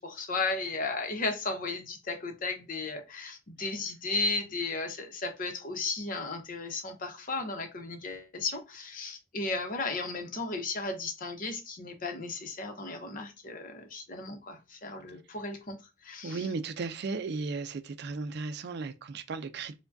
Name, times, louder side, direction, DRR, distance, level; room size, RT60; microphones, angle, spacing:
voice 1, 0.0-15.8 16.0-16.4, left 3 dB, 45° left, 0.8 m, -35 dB
voice 2, 16.2-19.7, right 4 dB, 55° right, 0.4 m, -35 dB
4.7 x 2.2 x 2.6 m
head